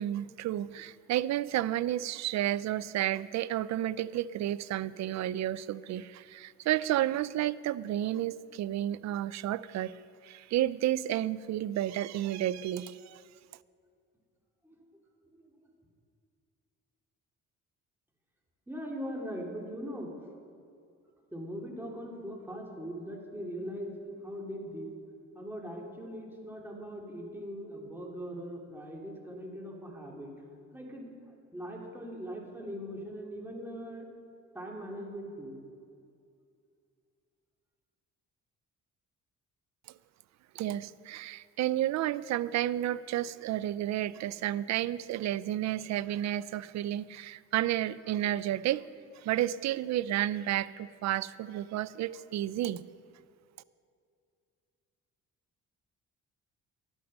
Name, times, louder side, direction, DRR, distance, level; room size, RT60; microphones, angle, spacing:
voice 1, 0.0-10.0 10.2-13.2 40.5-48.9 49.2-52.8, right 13 dB, 65° right, 19 dB, 0.4 m, -31 dB
voice 2, 18.7-20.1 21.3-24.9 25.3-30.3 30.7-31.1 31.5-34.1 34.5-35.6, equal, 5° right, -1 dB, 2.4 m, -40 dB
11.5 x 8.9 x 6.3 m, 2.4 s
cardioid pair, 90°, 30 cm